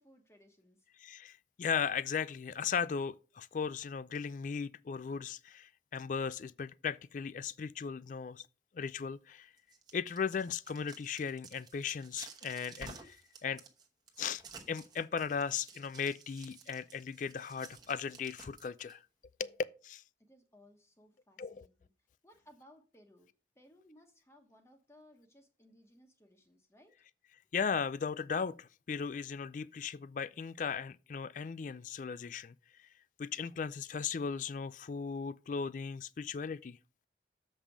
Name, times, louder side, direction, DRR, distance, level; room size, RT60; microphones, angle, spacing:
voice 1, 0.0-0.9 20.2-21.9 22.2-27.0, equal, 15° left, 1.0 m, -62 dB
voice 2, 1.0-8.5 8.7-9.5 9.9-13.6 14.2-14.4 14.7-19.0 19.4-19.6 19.8-20.0 21.4-21.7 27.5-32.9 33.2-36.8, left 6 dB, 45° left, 0.3 m, -37 dB
sound 1, 9.6-18.9, right 4 dB, 25° right, 1.0 m, -53 dB
7.3 x 5.4 x 4.8 m
head